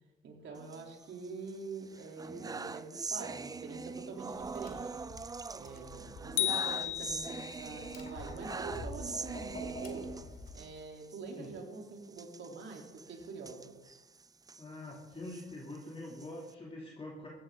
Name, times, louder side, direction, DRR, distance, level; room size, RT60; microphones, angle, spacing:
voice 1, 0.2-4.8 5.5-10.1 10.5-13.8, right 4 dB, 65° right, 0 dB, 3.4 m, -45 dB
sound 1, 0.6-1.5 1.9-10.7 11.0-11.2 11.4-11.6 12.1-14.6 15.1-16.5, right 4 dB, 20° right, 0.4 m, -43 dB
Tap, 4.3-10.6, left 2 dB, 45° left, 2.4 m, -48 dB
sound 2, 6.4-7.8, left 14 dB, 80° left, 0.5 m, -33 dB
voice 2, 14.6-17.3, left 1 dB, 30° left, -3 dB, 2.9 m, -45 dB
16.0 x 12.5 x 3.8 m, 1.1 s
cardioid pair, 90°, 20 cm